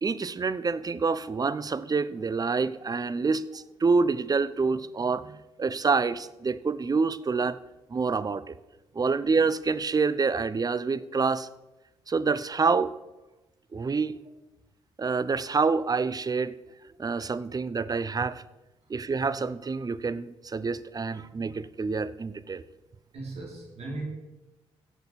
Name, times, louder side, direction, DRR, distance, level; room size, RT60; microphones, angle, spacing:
voice 1, 0.0-7.6 7.9-8.5 8.9-11.5 12.1-12.9 13.7-14.2 15.0-16.6 17.0-18.4 18.9-22.6, right 4 dB, 30° right, 16 dB, 0.6 m, -27 dB
voice 2, 23.1-24.0, right 2 dB, 50° right, -1 dB, 3.1 m, -38 dB
16.5 x 6.5 x 4.6 m, 1.0 s
hypercardioid pair, 45°, 13 cm